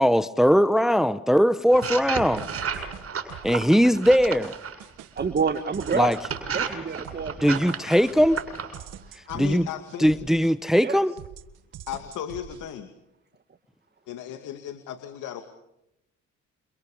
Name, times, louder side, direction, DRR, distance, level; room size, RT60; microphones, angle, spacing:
voice 1, 0.0-2.5 3.4-4.5 5.9-6.2 7.4-8.4 9.4-9.7 10.0-11.1, equal, ahead, 13 dB, 1.0 m, -20 dB
sound 1, 1.7-4.8 5.5-8.8, right 6 dB, 50° right, 7.4 m, -33 dB
sound 2, 2.2-3.7 4.0-10.8 11.2-12.7, right 10 dB, 90° right, 1.9 m, -44 dB
voice 2, 5.2-6.2 6.5-7.7 9.0-9.1 10.8-11.0, right 6 dB, 35° right, 8 dB, 1.9 m, -28 dB
voice 3, 9.3-10.2 11.9-12.9 14.1-15.4, left 10 dB, 90° left, 7 dB, 2.5 m, -35 dB
29.0 x 28.5 x 5.1 m, 0.84 s
cardioid pair, 90°, 30 cm